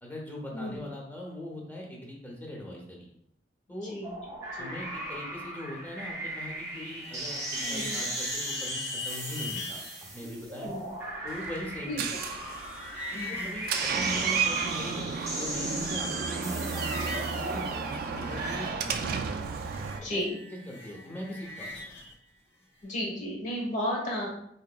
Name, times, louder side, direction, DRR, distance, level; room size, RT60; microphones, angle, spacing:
voice 1, 0.0-3.1 3.7-4.0 4.6-10.7 11.2-12.4 13.1-19.3 20.0-20.2 20.5-22.0, left 1 dB, 10° left, -2 dB, 0.8 m, -41 dB
voice 2, 3.8-4.2 4.5-4.7 7.6-8.0 10.6-10.9 11.9-12.0 13.1-13.6 20.0-20.4 22.8-24.3, left 1 dB, 45° left, -2 dB, 1.1 m, -33 dB
sound 1, 4.0-18.7, right 1 dB, 15° right, 0.7 m, -38 dB
sound 2, 6.6-10.0 11.4-14.7 15.0-15.8 16.1-17.4 17.7-22.1, left 2 dB, 75° left, 1.1 m, -42 dB
Door, 11.3-20.0, right 6 dB, 55° right, 0.3 m, -33 dB
4.2 x 2.9 x 2.3 m, 0.72 s
head